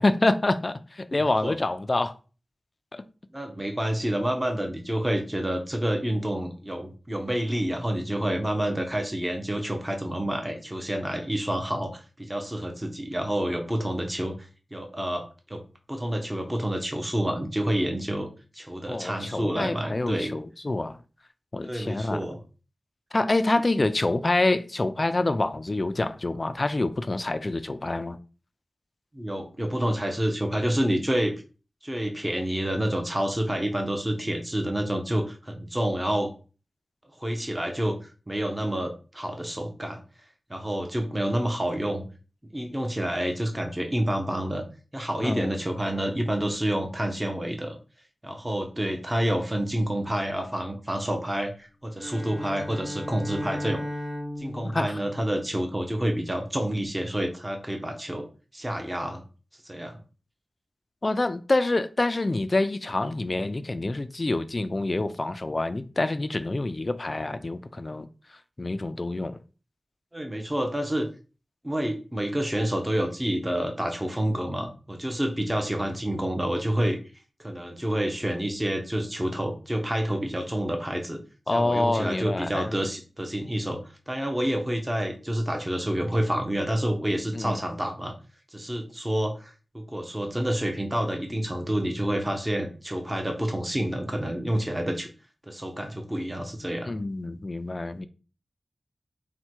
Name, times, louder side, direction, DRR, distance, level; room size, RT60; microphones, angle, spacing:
voice 1, 0.0-2.2 2.9-3.0 18.9-21.0 21.5-22.2 23.1-28.2 45.2-45.6 54.7-55.0 61.0-68.1 68.6-69.4 81.5-82.7 87.3-87.6 96.9-98.1, left 2 dB, 35° left, 0.3 m, -26 dB
voice 2, 1.1-1.6 3.3-14.3 14.7-15.6 15.9-18.3 18.5-20.3 21.6-22.4 29.1-31.3 31.8-36.3 37.2-40.0 40.5-42.0 42.5-44.6 44.9-47.8 48.2-53.8 54.4-58.3 58.5-59.2 59.7-60.0 70.1-71.1 71.6-77.0 77.4-81.2 81.5-88.1 88.5-95.1 95.5-96.9, right 1 dB, 15° right, 0.7 m, -28 dB
Bowed string instrument, 52.0-56.2, left 1 dB, 55° right, 1.7 m, -36 dB
4.4 x 2.2 x 4.4 m
wide cardioid pair, 100°, 0 cm